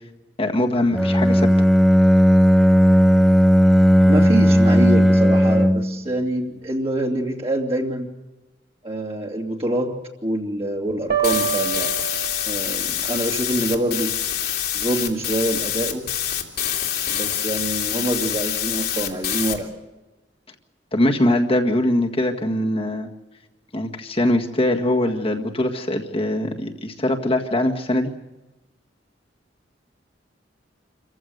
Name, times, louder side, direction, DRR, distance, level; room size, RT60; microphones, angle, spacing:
voice 1, 0.4-1.5 20.9-23.1 23.7-28.1, left 1 dB, 30° left, 2 dB, 1.8 m, -22 dB
Bowed string instrument, 0.9-6.0, equal, ahead, 0.8 m, -15 dB
voice 2, 4.1-8.1 8.8-11.9 12.5-14.1 14.7-16.1 17.1-19.7, right 1 dB, 35° right, -2 dB, 2.6 m, -25 dB
sound 1, 11.1-13.0, right 8 dB, 60° right, 2.3 m, -26 dB
sound 2, 11.2-19.6, left 10 dB, 60° left, 2.7 m, -26 dB
27.5 x 15.5 x 8.0 m, 1.1 s
head